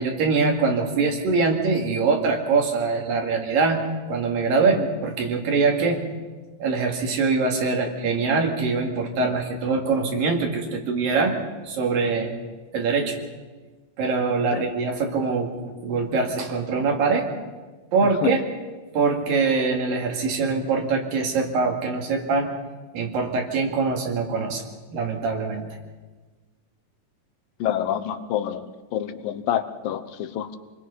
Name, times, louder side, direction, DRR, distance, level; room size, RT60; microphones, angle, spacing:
voice 1, 0.0-3.8 4.1-6.0 6.6-11.3 11.6-12.3 12.7-13.2 14.0-15.5 15.8-17.2 17.9-18.4 18.9-22.5 22.9-24.6 24.9-25.7, right 4 dB, 85° right, 2 dB, 4.1 m, -23 dB
voice 2, 27.6-28.6 28.9-30.6, left 10 dB, 85° left, 10 dB, 2.7 m, -27 dB
27.0 x 21.0 x 5.6 m, 1.3 s
omnidirectional pair, 3.9 m